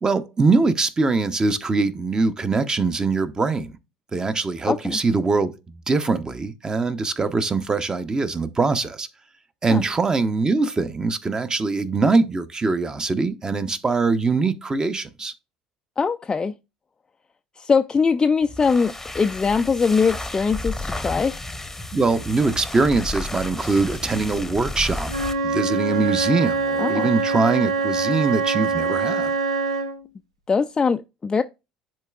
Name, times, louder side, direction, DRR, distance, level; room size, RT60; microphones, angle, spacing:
voice 1, 0.0-3.8 4.1-5.5 5.9-9.1 9.6-15.3 21.9-25.1 25.4-29.3, right 3 dB, 25° right, 0.8 m, -22 dB
voice 2, 4.7-5.0 9.7-9.8 16.0-16.5 17.6-21.4 26.8-27.1 30.5-31.4, left 5 dB, 25° left, 0.3 m, -21 dB
sound 1, 18.4-25.4, left 2 dB, 10° left, 0.8 m, -32 dB
Wind instrument woodwind instrument, 25.1-30.0, right 4 dB, 85° right, 0.5 m, -24 dB
10.5 x 3.8 x 2.4 m
figure-of-eight pair, 65°, 3 cm